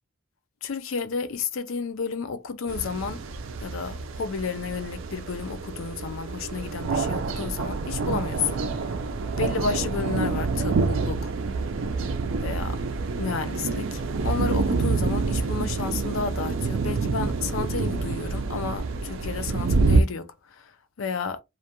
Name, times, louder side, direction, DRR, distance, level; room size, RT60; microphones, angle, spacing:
voice 1, 0.6-3.2 3.6-8.6 9.4-11.3 12.4-12.8 13.2-21.4, left 5 dB, 85° left, 0.5 m, -31 dB
sound 1, 2.7-20.0, right 4 dB, 75° right, 0.4 m, -27 dB
2.5 x 2.1 x 2.8 m
head